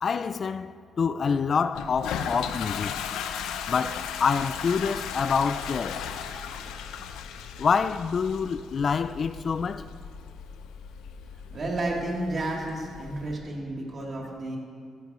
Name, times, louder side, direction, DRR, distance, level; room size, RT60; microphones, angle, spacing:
voice 1, 0.0-3.0 3.7-6.1 7.6-9.9, left 5 dB, 45° left, 0.3 m, -27 dB
Toilet flush, 1.7-13.3, left 8 dB, 90° left, 0.6 m, -37 dB
voice 2, 11.5-14.6, right 2 dB, 45° right, 3.2 m, -31 dB
15.5 x 13.0 x 3.1 m
cardioid pair, 90°, 0 cm